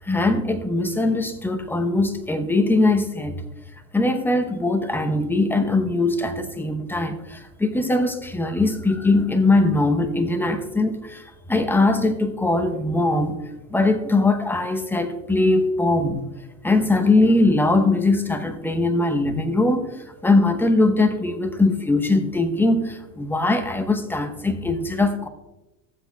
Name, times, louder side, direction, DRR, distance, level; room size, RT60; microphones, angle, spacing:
voice 1, 0.1-3.4 3.9-11.2 11.5-16.2 16.6-19.9 20.2-25.3, left 2 dB, 5° left, 0.8 m, -21 dB
15.0 x 7.8 x 2.3 m
hypercardioid pair, 100°, 49 cm